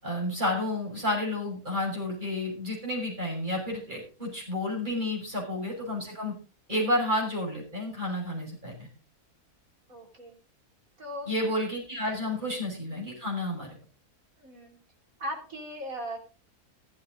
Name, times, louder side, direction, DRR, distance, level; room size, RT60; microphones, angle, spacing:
voice 1, 0.0-6.3 6.7-8.9 11.3-13.7, left 1 dB, 30° right, -1 dB, 6.6 m, -31 dB
voice 2, 9.9-10.4 11.0-11.6 12.2-12.6 14.4-14.8 15.2-16.2, equal, 60° right, 2 dB, 3.9 m, -39 dB
14.5 x 13.0 x 3.9 m, 0.35 s
omnidirectional pair, 1.6 m